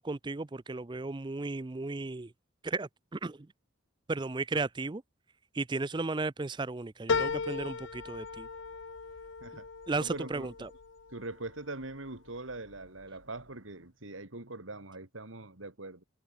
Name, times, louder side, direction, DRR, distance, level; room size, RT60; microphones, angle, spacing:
voice 1, 0.0-2.3 2.6-3.4 4.1-5.0 5.5-8.5 9.9-10.7, right 3 dB, 20° right, 0.5 m, -34 dB
sound 1, 7.1-11.8 12.3-13.0 13.4-13.5, left 4 dB, 65° left, 0.7 m, -36 dB
voice 2, 10.0-10.5 11.1-16.0, right 2 dB, 75° right, 2.8 m, -42 dB
head